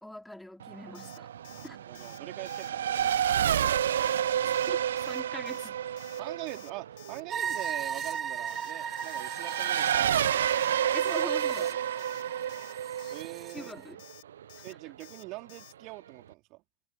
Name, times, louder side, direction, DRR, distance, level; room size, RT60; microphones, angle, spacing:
voice 1, 0.0-1.3 1.6-1.8 4.4-4.8 5.1-5.8 10.9-11.7 13.5-14.0, left 1 dB, 5° left, 3.6 m, -42 dB
Race car auto racing / Accelerating revving vroom, 0.6-14.7, right 10 dB, 65° right, 1.3 m, -30 dB
Alarm, 0.9-1.2 1.4-1.7 1.9-2.2 2.5-2.7 2.9-3.2 3.4-3.7 4.0-4.2 4.5-4.7 5.0-5.2 5.5-5.7 6.0-6.2 6.5-6.7 7.0-7.2 7.5-7.7 8.0-8.2 8.5-8.7 9.0-9.2 9.5-9.7 10.0-10.2 10.5-10.7 11.0-11.2 11.5-11.7 12.0-12.2 12.5-12.7 13.0-13.2 13.5-13.7 14.0-14.2 14.5-14.7 15.0-15.2 15.5-15.7, left 22 dB, 50° left, 3.5 m, -53 dB
voice 2, 1.5-3.1 6.2-10.4 11.0-11.7 13.1-13.7 14.6-16.6, right 22 dB, 40° right, 3.7 m, -43 dB
sound 1, 7.3-13.5, right 8 dB, 25° right, 2.4 m, -37 dB
figure-of-eight pair, 90°, 0 cm